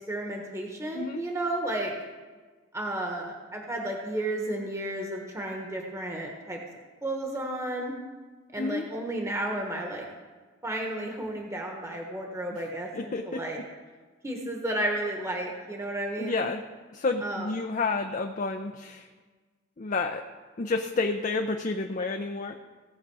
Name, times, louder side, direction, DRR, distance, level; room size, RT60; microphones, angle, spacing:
voice 1, 0.1-1.9 2.7-6.6 7.0-7.9 8.5-10.0 10.6-13.6 14.2-16.4 17.2-17.5, right 1 dB, 15° right, 0 dB, 1.2 m, -32 dB
voice 2, 12.9-13.4 16.2-16.6 16.9-19.1 19.8-20.2 20.6-22.6, left 3 dB, 40° left, 5 dB, 0.5 m, -30 dB
17.5 x 6.5 x 4.7 m, 1.4 s
head